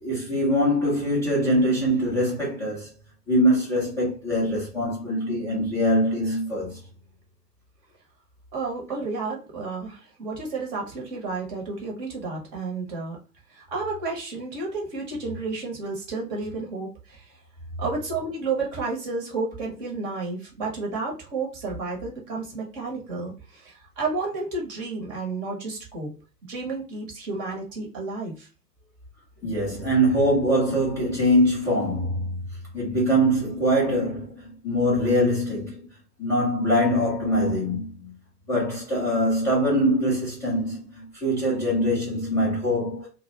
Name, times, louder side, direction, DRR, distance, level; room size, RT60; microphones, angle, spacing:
voice 1, 0.0-2.9 3.3-6.8 29.4-32.4 32.7-35.9 36.2-38.1 38.5-43.1, equal, 5° left, 0.4 m, -23 dB
voice 2, 8.5-13.2 13.5-17.3 17.8-26.1 26.5-28.5, right 3 dB, 25° right, 0.7 m, -31 dB
2.4 x 2.1 x 2.7 m
figure-of-eight pair, 115°, 49 cm